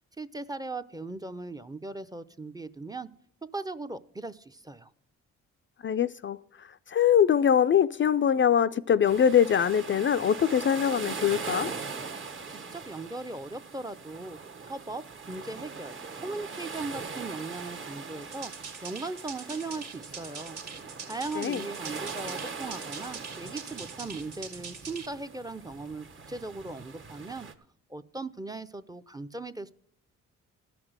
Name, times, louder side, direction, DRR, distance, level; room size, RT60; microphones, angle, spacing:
voice 1, 0.2-3.1 3.5-4.9 12.5-18.5 18.8-20.6 21.1-27.5 27.9-29.7, right 3 dB, 15° right, 0.6 m, -38 dB
voice 2, 5.8-11.7 21.4-21.6, left 8 dB, 40° left, 0.4 m, -23 dB
sound 1, 9.0-27.5, right 5 dB, 40° right, 1.2 m, -41 dB
sound 2, 18.2-25.1, right 5 dB, 70° right, 2.0 m, -43 dB
13.0 x 6.0 x 7.9 m
cardioid pair, 80°, 29 cm